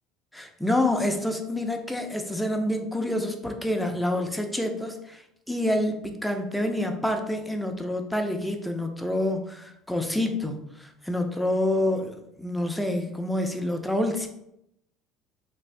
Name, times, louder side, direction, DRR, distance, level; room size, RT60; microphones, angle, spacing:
voice 1, 0.3-14.3, left 1 dB, 5° left, 4 dB, 0.5 m, -27 dB
3.5 x 2.5 x 3.3 m, 0.80 s
supercardioid pair, 90°, 0 cm